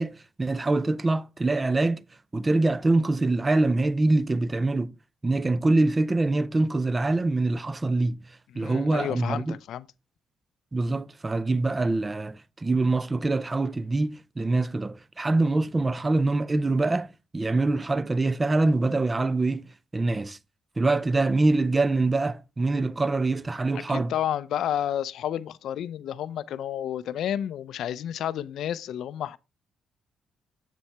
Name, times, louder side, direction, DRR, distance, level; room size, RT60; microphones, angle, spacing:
voice 1, 0.0-2.0 2.3-4.9 5.2-8.2 8.5-9.6 10.7-20.4 20.8-24.1, right 2 dB, 25° right, 0.5 m, -24 dB
voice 2, 8.5-9.9 23.9-29.4, left 10 dB, 75° left, 0.4 m, -31 dB
7.6 x 7.2 x 3.3 m
cardioid pair, 90°, 0 cm